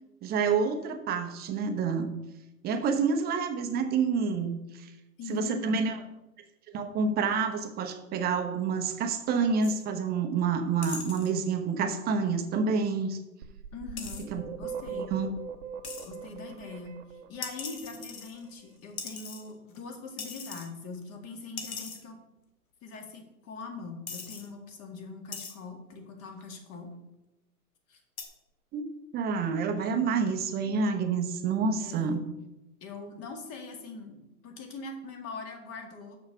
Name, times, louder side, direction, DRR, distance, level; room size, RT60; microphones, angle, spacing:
voice 1, 0.2-2.1 2.6-4.9 5.3-6.0 6.7-13.2 14.3-14.4 15.1-15.3 28.7-32.2, right 5 dB, 20° right, 6 dB, 0.9 m, -28 dB
voice 2, 5.2-5.8 13.7-14.2 14.6-15.1 16.0-22.2 22.8-26.9 27.9-28.0 31.8-32.2 32.8-36.2, left 4 dB, 35° left, 3 dB, 2.0 m, -42 dB
sound 1, 9.6-9.8 10.8-11.3 14.0-14.2 15.8-16.1 17.4-18.6 19.0-19.8 20.2-20.7 21.0-21.1 21.6-22.0 23.0-23.1 23.6-23.7 24.1-24.5 25.3-25.5 26.4-26.7 28.2-28.3, left 5 dB, 70° left, 2.1 m, -40 dB
sound 2, 13.4-18.3, right 7 dB, 55° right, 1.1 m, -40 dB
6.5 x 6.4 x 7.0 m, 0.95 s
hypercardioid pair, 130°, 46 cm